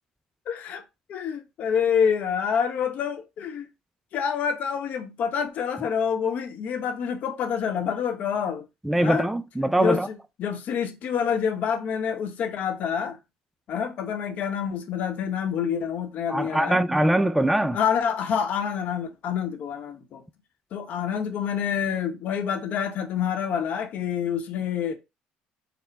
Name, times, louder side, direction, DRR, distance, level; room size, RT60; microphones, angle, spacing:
voice 1, 0.5-0.8 1.1-3.7 4.1-8.6 9.0-9.3 9.8-13.2 13.7-16.8 17.6-20.2 20.7-24.9, left 7 dB, 60° left, 0.9 m, -27 dB
voice 2, 8.8-10.1 16.3-17.8, right 1 dB, 5° right, 0.3 m, -22 dB
4.3 x 2.1 x 4.0 m
supercardioid pair, 100°, 3 cm